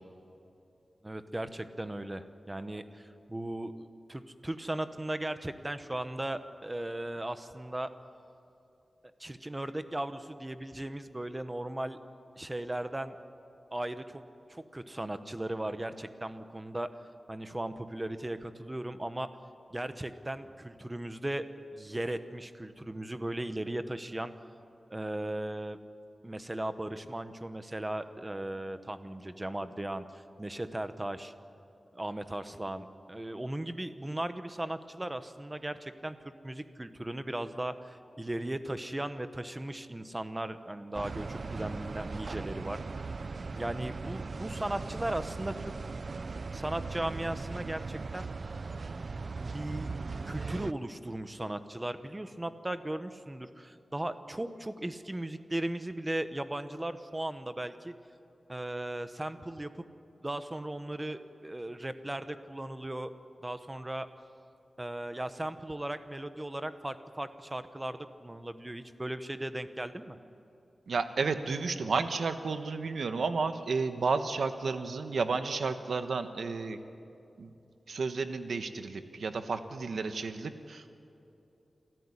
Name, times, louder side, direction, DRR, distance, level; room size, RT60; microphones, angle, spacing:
voice 1, 1.0-7.9 9.2-12.0 12.4-13.1 13.7-14.2 14.5-16.9 17.3-19.3 19.7-21.5 21.7-24.3 24.9-25.8 26.2-31.3 31.9-36.2 36.4-42.8 43.5-45.7 46.5-48.3 49.4-49.9 50.2-57.9 58.5-59.9 60.2-63.1 63.4-64.1 64.8-70.2, right 1 dB, 20° right, 10 dB, 1.1 m, -37 dB
sound 1, 40.9-50.7, right 4 dB, 55° right, 0.5 m, -39 dB
voice 2, 70.9-76.8 77.4-77.5 77.9-80.9, right 4 dB, 85° right, 9 dB, 1.2 m, -32 dB
27.5 x 14.0 x 9.9 m, 2.8 s
wide cardioid pair, 95°, 0 cm